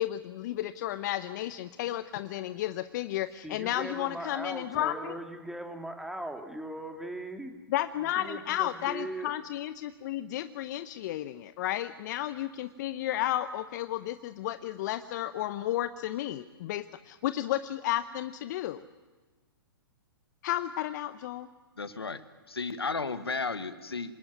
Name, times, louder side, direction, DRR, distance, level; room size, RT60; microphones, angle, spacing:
voice 1, 0.0-5.1 7.7-18.8 20.4-21.5, left 13 dB, 50° left, 12 dB, 0.8 m, -33 dB
voice 2, 3.4-7.5 8.2-9.3, right 1 dB, ahead, 4 dB, 2.5 m, -39 dB
voice 3, 21.8-22.2 22.5-24.1, left 4 dB, 85° left, 11 dB, 1.5 m, -33 dB
26.5 x 19.5 x 9.5 m, 1.3 s
figure-of-eight pair, 115°, 13 cm